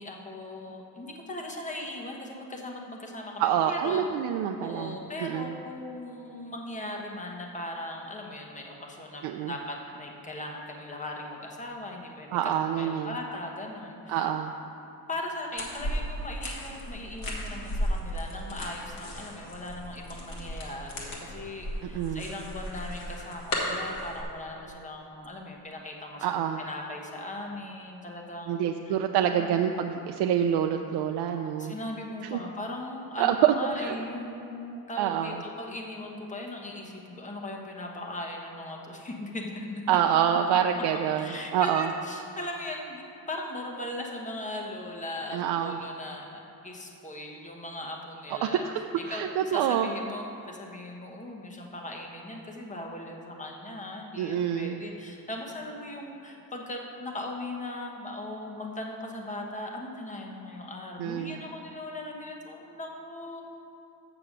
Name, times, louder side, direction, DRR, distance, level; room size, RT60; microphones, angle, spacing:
voice 1, 0.0-4.0 4.6-14.2 15.1-29.7 31.3-40.0 40.5-40.8 41.1-48.7 49.1-63.4, left 1 dB, 20° left, 1 dB, 1.1 m, -39 dB
voice 2, 3.4-5.6 9.2-9.5 12.3-13.2 14.1-14.5 21.8-22.3 26.2-26.6 28.5-31.7 32.3-32.4 33.2-34.0 35.0-35.4 39.9-41.9 45.3-45.8 48.3-49.9 54.2-54.8 61.0-61.4, right 9 dB, 85° right, 4 dB, 0.5 m, -27 dB
sound 1, 15.6-24.2, equal, 60° left, 2.0 m, -35 dB
6.9 x 6.8 x 7.3 m, 2.8 s
cardioid pair, 130°, 39 cm